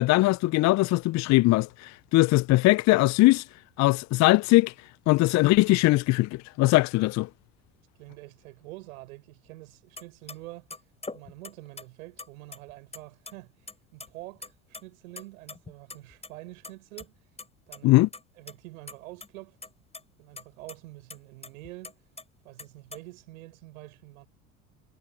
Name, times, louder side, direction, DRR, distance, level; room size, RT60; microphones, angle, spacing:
voice 1, 0.0-3.4 3.8-4.7 5.1-7.3 17.8-18.1, left 20 dB, 40° left, 0.7 m, -21 dB
voice 2, 8.0-10.7 11.1-17.2 17.7-18.0 18.4-19.6 20.2-22.0 22.4-24.3, right 20 dB, 65° right, 5.6 m, -46 dB
sound 1, 10.0-10.1 10.3-10.4 10.7-11.8 12.2-13.0 13.3-13.4 13.7-14.1 14.4-14.8 15.2-16.3 16.6-17.1 17.4-17.5 17.7-17.8 18.1-18.5 18.9-19.3 19.6-20.0 20.4-20.5 20.7-20.8 21.1-22.2 22.6-23.0, left 3 dB, 15° left, 6.8 m, -42 dB
figure-of-eight pair, 70°, 44 cm